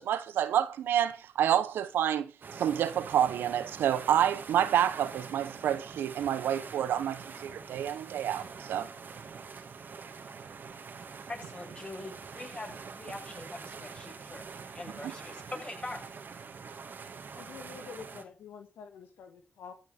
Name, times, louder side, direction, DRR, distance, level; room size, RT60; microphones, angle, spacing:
voice 1, 0.0-8.9 15.0-15.1, right 10 dB, 85° right, 0.9 m, -28 dB
sound 1, 2.4-18.2, right 5 dB, 65° right, 2.1 m, -45 dB
voice 2, 11.3-16.0, left 2 dB, 35° left, 7.1 m, -43 dB
voice 3, 17.3-19.7, left 6 dB, 90° left, 1.6 m, -47 dB
14.0 x 6.7 x 6.5 m
supercardioid pair, 40°, 4 cm